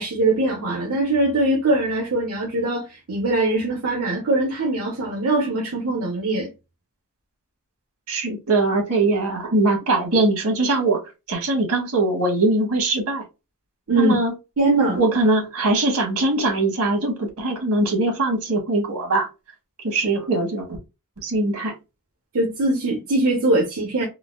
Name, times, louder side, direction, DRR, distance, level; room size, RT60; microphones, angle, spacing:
voice 1, 0.0-6.5 13.9-14.2 14.6-15.0 22.3-24.1, right 2 dB, 65° right, 0.8 m, -22 dB
voice 2, 8.1-11.0 11.3-13.2 13.9-14.3 15.0-19.3 19.8-20.7 21.2-21.7, right 2 dB, 85° right, 1.6 m, -21 dB
3.8 x 2.1 x 2.3 m
head